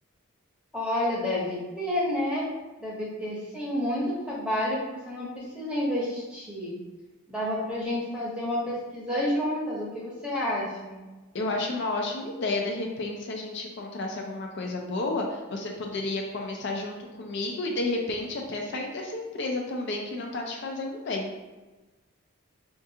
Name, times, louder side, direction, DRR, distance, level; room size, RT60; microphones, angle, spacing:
voice 1, 0.7-2.5 2.8-6.7 7.3-11.0, left 1 dB, 5° right, -5 dB, 0.7 m, -30 dB
voice 2, 11.3-21.3, left 2 dB, 50° left, 1 dB, 0.4 m, -31 dB
4.5 x 2.3 x 2.7 m, 1.2 s
head